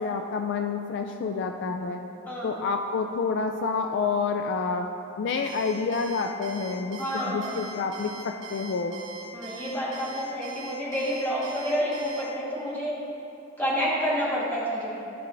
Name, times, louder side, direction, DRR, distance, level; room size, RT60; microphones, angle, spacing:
voice 1, 0.0-2.0 2.4-4.9 5.2-7.0 7.3-8.9, left 4 dB, 60° left, 5 dB, 0.3 m, -28 dB
voice 2, 2.3-2.6 7.0-7.6 9.3-12.9 13.6-15.0, equal, 10° left, -7 dB, 1.5 m, -29 dB
Alarm, 5.4-12.2, right 4 dB, 70° right, 1.1 m, -42 dB
12.5 x 5.6 x 2.6 m, 2.9 s
head